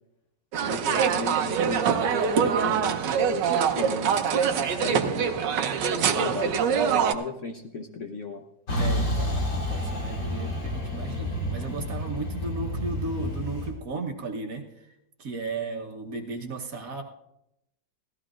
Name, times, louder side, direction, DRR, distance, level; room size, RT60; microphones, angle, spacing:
sound 1, 0.5-7.1, right 7 dB, 80° right, 1.4 m, -24 dB
voice 1, 0.6-3.5 3.7-5.3 5.9-8.4, left 3 dB, 55° left, 3 dB, 1.0 m, -35 dB
Truck, 8.7-13.7, left 1 dB, 70° left, 3.1 m, -29 dB
voice 2, 8.8-14.9 15.2-17.0, right 3 dB, 55° right, 2 dB, 1.5 m, -35 dB
18.0 x 14.0 x 2.5 m, 0.85 s
omnidirectional pair, 1.9 m